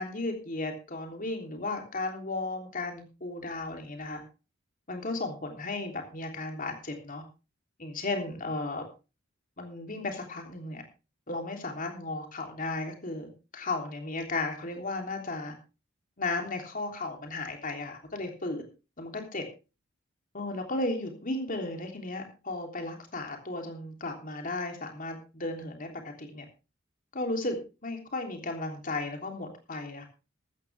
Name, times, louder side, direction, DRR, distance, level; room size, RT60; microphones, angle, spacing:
voice 1, 0.0-4.2 4.9-7.2 7.8-8.8 9.6-10.8 11.3-15.5 16.2-18.6 19.0-19.4 20.3-26.4 27.1-27.6 27.8-30.0, left 2 dB, 40° left, 3 dB, 3.3 m, -35 dB
14.0 x 13.5 x 3.5 m, 0.31 s
head